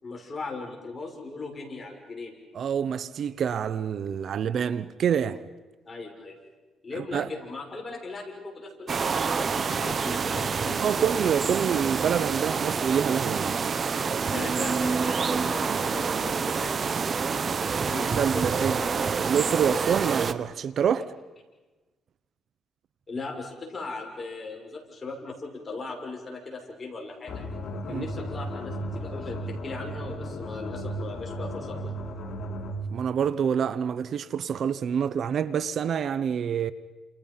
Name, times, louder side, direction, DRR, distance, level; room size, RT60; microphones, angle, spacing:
voice 1, 0.0-2.3 5.9-6.4 6.8-11.0 14.3-16.7 17.8-19.1 23.1-27.4 27.9-31.9, left 3 dB, 30° left, 6.7 m, -38 dB
voice 2, 2.5-5.4 7.0-7.3 10.8-13.7 17.9-18.8 19.3-21.1 27.9-28.0 32.9-36.7, right 8 dB, 60° right, 0.9 m, -27 dB
sound 1, 8.9-20.3, right 5 dB, 45° right, 1.2 m, -27 dB
sound 2, 27.3-32.9, right 1 dB, 55° left, 3.4 m, -35 dB
30.0 x 28.0 x 5.7 m
cardioid pair, 90°, 0 cm